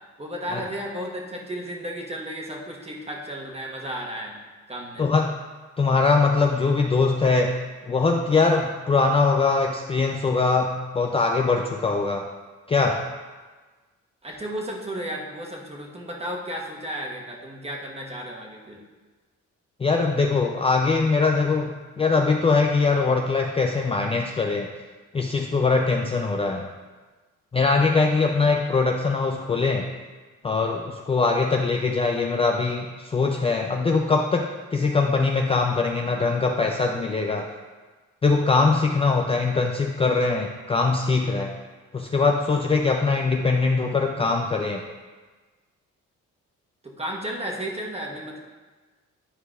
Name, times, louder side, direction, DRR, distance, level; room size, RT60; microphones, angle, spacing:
voice 1, 0.2-4.4 4.7-5.1 14.2-18.8 46.8-48.4, equal, 20° right, -1 dB, 1.2 m, -33 dB
voice 2, 5.0-5.4 5.8-7.6 7.9-12.3 12.7-13.1 19.8-24.7 25.1-26.7 27.5-29.9 30.4-37.5 38.2-41.6 41.9-44.8, left 4 dB, 20° left, 2 dB, 0.4 m, -22 dB
10.0 x 4.7 x 2.4 m, 1.3 s
cardioid pair, 90°, 30 cm